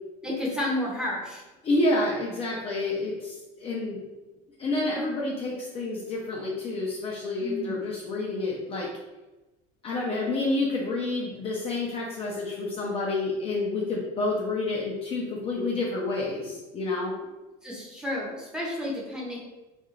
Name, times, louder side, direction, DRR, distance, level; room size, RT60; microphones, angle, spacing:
voice 1, 0.2-1.4 7.4-7.8 17.6-19.4, left 1 dB, 5° right, -4 dB, 0.7 m, -31 dB
voice 2, 1.6-4.0 4.6-8.9 9.8-17.1, left 2 dB, 30° left, -3 dB, 0.4 m, -29 dB
2.4 x 2.3 x 3.0 m, 1.1 s
supercardioid pair, 130°, 20 cm